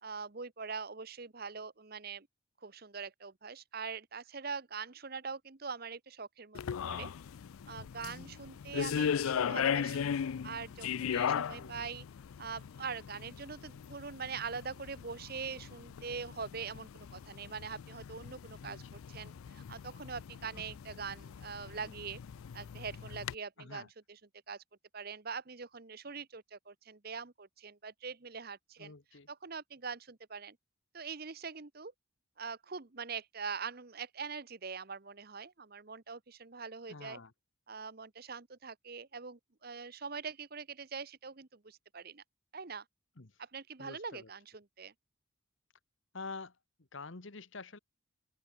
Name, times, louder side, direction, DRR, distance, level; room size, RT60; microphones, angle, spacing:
voice 1, 0.0-2.3 2.6-7.1 7.7-10.0 10.4-12.0 12.4-22.2 22.5-24.2 24.5-24.6 24.9-28.9 29.3-30.6 30.9-31.9 32.4-37.2 37.7-42.2 42.5-42.8 43.4-44.9, right 5 dB, 45° right, 1.0 m, -43 dB
sound 1, 6.5-23.3, left 7 dB, 85° left, 0.4 m, -38 dB
voice 2, 8.0-8.3 11.5-11.9 18.6-18.9 20.5-20.7 23.6-23.9 28.8-29.3 36.9-37.3 43.2-43.3 43.8-44.3 46.1-46.6 46.9-47.8, left 3 dB, 65° left, 1.3 m, -47 dB
head